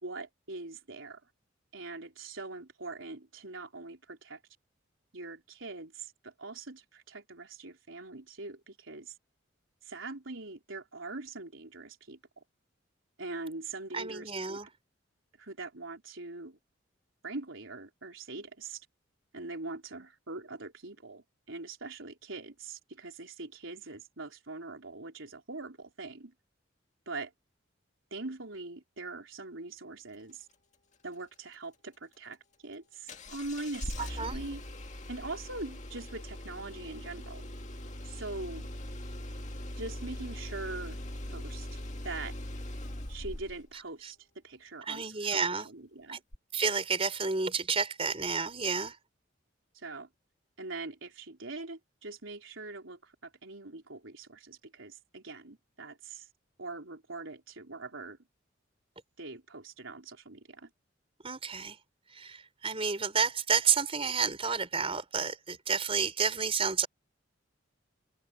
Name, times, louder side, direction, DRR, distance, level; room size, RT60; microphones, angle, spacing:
voice 1, 0.0-1.2 1.7-4.4 5.1-9.1 9.8-12.4 13.2-14.6 15.4-16.6 17.2-18.9 19.3-26.3 27.1-27.3 28.1-30.5 31.0-32.4 32.6-34.6 35.1-37.5 38.0-38.7 39.8-41.0 41.3-42.3 43.1-44.2 44.4-46.2 49.7-50.1 50.6-56.3 56.6-58.2 59.2-60.7, right 3 dB, 85° right, 4.1 m, -42 dB
voice 2, 13.9-14.7 34.0-34.4 44.0-44.1 44.8-45.7 46.1-46.2 46.5-49.0 61.2-61.8 62.1-66.9, right 5 dB, 30° right, 4.9 m, -30 dB
Engine starting, 33.1-43.7 46.3-46.4, left 1 dB, 35° left, 2.0 m, -41 dB
open air
head